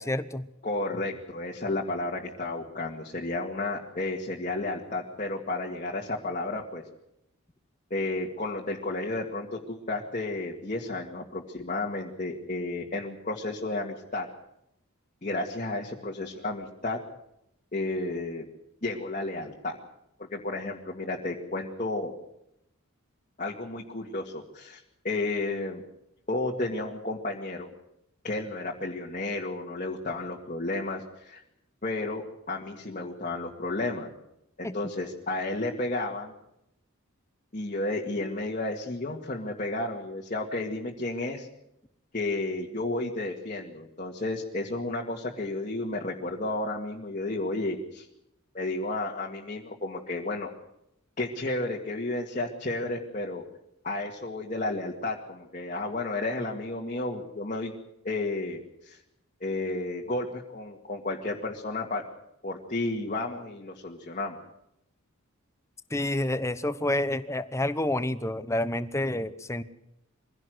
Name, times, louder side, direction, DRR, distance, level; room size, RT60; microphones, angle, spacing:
voice 1, 0.0-0.5 34.6-34.8 65.9-69.6, left 1 dB, 15° left, 13 dB, 0.9 m, -29 dB
voice 2, 0.6-6.8 7.9-14.3 15.2-17.0 17.7-18.4 18.8-19.8 20.3-22.1 23.4-25.8 26.3-27.7 28.2-31.4 31.8-34.1 34.6-36.3 37.5-41.5 42.1-48.1 48.5-50.5 51.2-53.4 53.8-57.7 58.0-59.0 59.4-62.0 62.4-64.4, left 2 dB, 35° left, -1 dB, 2.1 m, -32 dB
23.5 x 16.5 x 7.8 m, 0.82 s
head